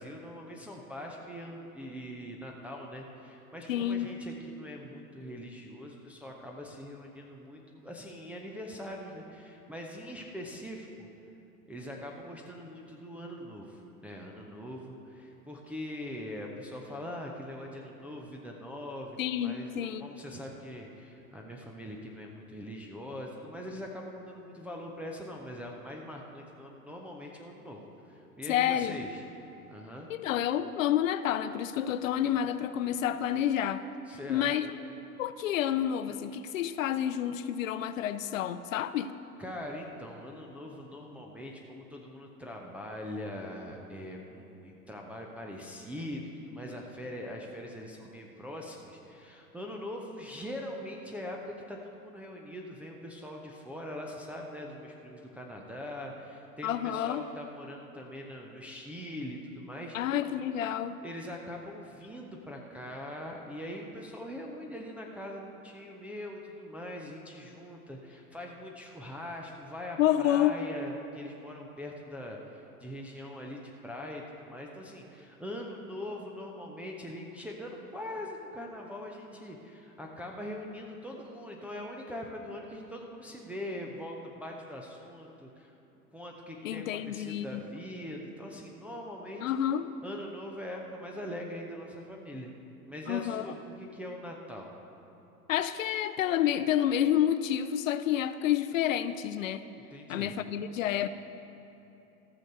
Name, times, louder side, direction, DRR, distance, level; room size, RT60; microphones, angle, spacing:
voice 1, 0.0-11.1 11.7-27.8 28.1-29.2 29.7-30.1 34.1-34.5 38.3-38.4 39.4-60.0 61.0-85.7 86.1-89.4 90.0-92.5 92.9-94.7 99.9-100.3, left 1 dB, 5° right, -1 dB, 0.4 m, -42 dB
voice 2, 3.7-4.1 19.2-20.1 28.5-29.0 30.1-33.8 34.3-34.7 35.2-39.1 56.6-57.2 59.9-61.0 70.0-70.6 86.6-87.6 89.4-89.9 93.1-93.5 95.5-99.6 100.1-101.1, left 10 dB, 60° left, 13 dB, 0.6 m, -29 dB
14.0 x 6.4 x 6.5 m, 2.9 s
figure-of-eight pair, 90°, 46 cm